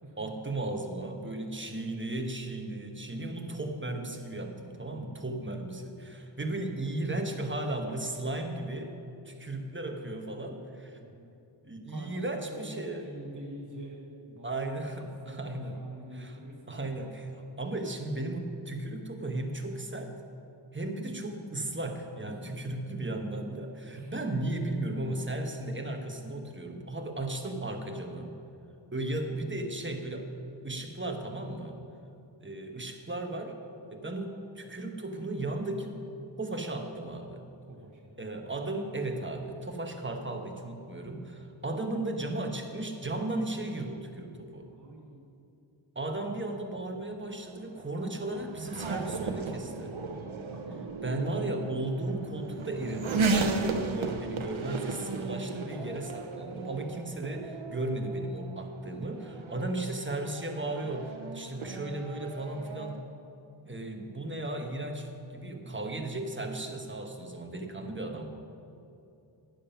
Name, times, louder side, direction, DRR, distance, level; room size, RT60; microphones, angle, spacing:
voice 1, 0.2-8.9 9.2-11.0 11.6-13.1 14.4-15.8 16.1-16.4 16.7-20.1 20.7-28.3 28.9-30.3 30.6-31.8 32.4-33.6 33.9-36.0 36.4-37.4 38.2-44.7 45.9-50.0 51.0-63.0 63.6-68.3, right 2 dB, 25° right, 3 dB, 1.2 m, -35 dB
voice 2, 4.9-5.3 10.9-11.3 11.9-14.5 15.2-15.4 15.7-17.0 22.2-22.6 23.8-24.1 37.7-38.2 44.6-45.5 50.5-51.0, right 1 dB, 40° right, -2 dB, 1.3 m, -46 dB
Race car auto racing / Accelerating revving vroom, 46.8-63.0, right 3 dB, 70° right, 0.9 m, -35 dB
10.5 x 9.0 x 5.8 m, 2.7 s
wide cardioid pair, 70°, 49 cm